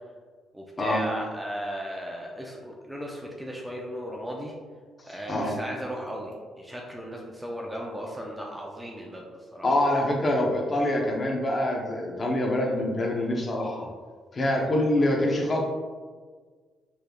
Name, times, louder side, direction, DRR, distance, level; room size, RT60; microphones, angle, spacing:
voice 1, 0.5-4.5 5.0-9.7 12.6-12.7, equal, 10° right, -1 dB, 0.5 m, -36 dB
voice 2, 9.6-13.9 14.3-15.6, left 1 dB, 35° left, 0 dB, 0.8 m, -25 dB
4.5 x 3.3 x 2.3 m, 1.5 s
cardioid pair, 90°, 0 cm